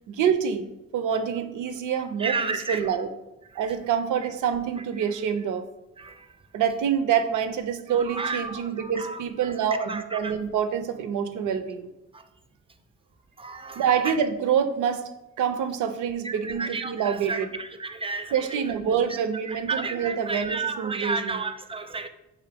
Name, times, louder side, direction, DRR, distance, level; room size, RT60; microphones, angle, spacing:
voice 1, 0.1-0.6 0.9-3.1 3.6-5.7 6.5-11.9 13.8-15.1 15.4-17.5 18.3-21.4, right 8 dB, 80° right, 8 dB, 0.5 m, -26 dB
voice 2, 2.2-2.9 6.0-6.3 7.9-10.3 12.1-12.2 13.4-14.1 16.2-19.2 19.5-22.1, right 4 dB, 20° right, 9 dB, 0.4 m, -33 dB
4.8 x 2.7 x 3.4 m, 0.95 s
supercardioid pair, 55°, 30 cm